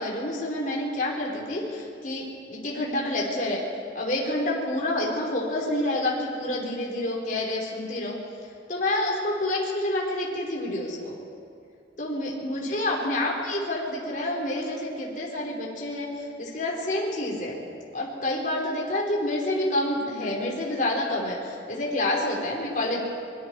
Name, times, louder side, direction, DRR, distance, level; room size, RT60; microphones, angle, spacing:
voice 1, 0.0-3.6 3.9-8.2 8.7-11.2 12.0-17.5 17.9-23.0, left 1 dB, 45° left, -3 dB, 4.8 m, -28 dB
25.0 x 23.5 x 4.9 m, 2.4 s
head